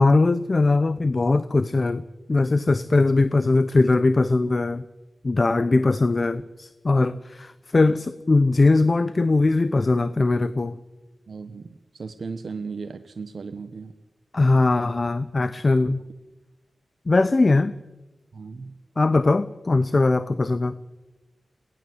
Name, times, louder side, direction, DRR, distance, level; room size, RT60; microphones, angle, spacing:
voice 1, 0.0-4.8 5.2-10.8 14.3-16.0 17.1-17.7 19.0-20.8, left 3 dB, 45° left, 15 dB, 0.9 m, -20 dB
voice 2, 11.3-13.9 15.8-15.9 18.3-18.7, right 4 dB, 70° right, 8 dB, 1.2 m, -36 dB
22.0 x 19.0 x 8.0 m, 1.1 s
cardioid pair, 40°, 0 cm